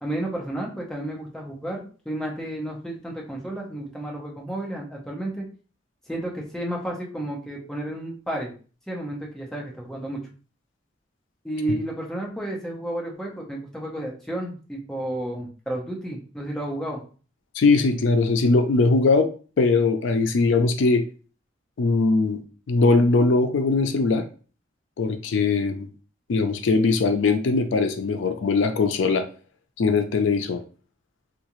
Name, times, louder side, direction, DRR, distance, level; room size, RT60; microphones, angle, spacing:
voice 1, 0.0-5.4 6.1-8.5 8.9-10.2 11.4-17.0, right 1 dB, 5° left, -2 dB, 0.7 m, -32 dB
voice 2, 17.5-19.3 19.6-21.1 21.8-22.4 22.7-24.2 25.0-25.9 26.3-29.3 29.8-30.6, left 3 dB, 80° left, 8 dB, 0.4 m, -20 dB
3.7 x 2.4 x 3.0 m, 0.38 s
head